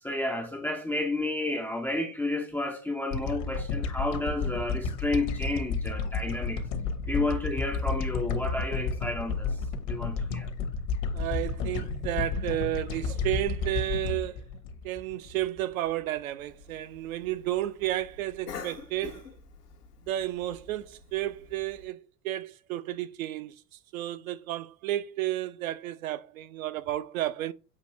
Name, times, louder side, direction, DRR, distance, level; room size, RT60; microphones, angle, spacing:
voice 1, 0.0-6.6 7.1-9.6 9.9-10.5, left 2 dB, 5° left, 0.3 m, -31 dB
sound 1, 3.1-15.6, left 4 dB, 55° left, 0.9 m, -31 dB
voice 2, 11.1-14.4 14.8-19.3 20.1-23.6 23.9-27.5, right 14 dB, 60° right, 0.5 m, -32 dB
Cough, 16.4-21.8, left 6 dB, 80° left, 0.9 m, -47 dB
6.3 x 2.6 x 3.0 m
figure-of-eight pair, 85°, 46 cm